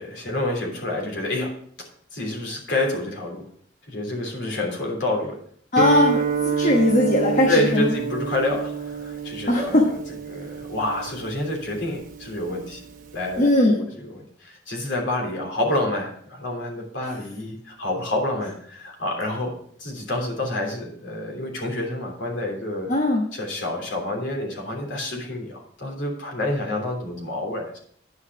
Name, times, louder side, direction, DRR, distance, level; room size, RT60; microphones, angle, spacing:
voice 1, 0.0-1.5 2.1-3.4 3.9-5.4 6.1-6.2 6.6-6.7 7.5-10.0 10.3-12.8 13.1-13.5 13.8-19.5 19.8-22.9 23.3-27.8, left 1 dB, 70° left, 0 dB, 3.1 m, -28 dB
voice 2, 5.7-6.2 6.6-7.9 9.5-9.8 13.4-13.9 22.9-23.2, left 1 dB, 40° left, -1 dB, 1.2 m, -19 dB
Guitar, 5.8-13.5, right 6 dB, 45° right, 1.0 m, -29 dB
10.0 x 5.6 x 5.9 m, 0.62 s
head